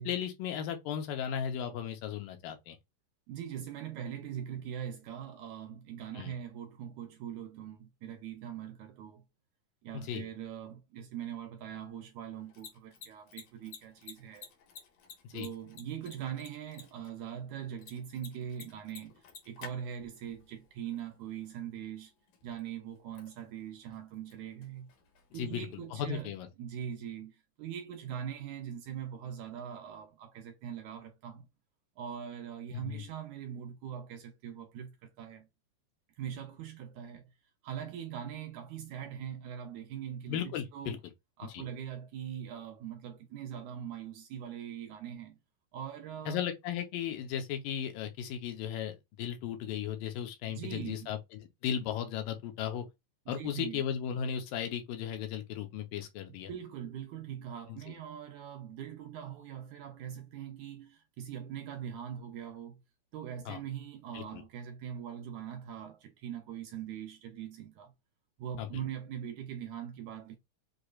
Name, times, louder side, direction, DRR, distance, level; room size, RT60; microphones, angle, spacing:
voice 1, 0.0-2.8 6.2-6.3 9.9-10.3 15.3-15.5 25.3-26.5 32.7-33.0 40.3-41.0 41.5-41.6 46.3-52.9 53.3-56.5 57.7-57.9 63.5-63.6 64.1-64.4 68.6-68.7, left 9 dB, 85° left, 2.5 m, -36 dB
voice 2, 3.3-9.2 9.8-14.5 15.3-22.1 22.4-24.9 25.3-26.3 26.6-31.5 32.0-35.5 36.2-37.3 37.6-41.0 41.4-45.4 45.7-46.4 50.4-51.1 53.3-53.8 56.5-62.8 63.1-67.9 68.4-70.4, right 9 dB, 80° right, 1.8 m, -42 dB
Mechanisms, 12.3-25.9, left 7 dB, 65° left, 2.3 m, -55 dB
6.5 x 2.9 x 2.4 m
omnidirectional pair, 4.0 m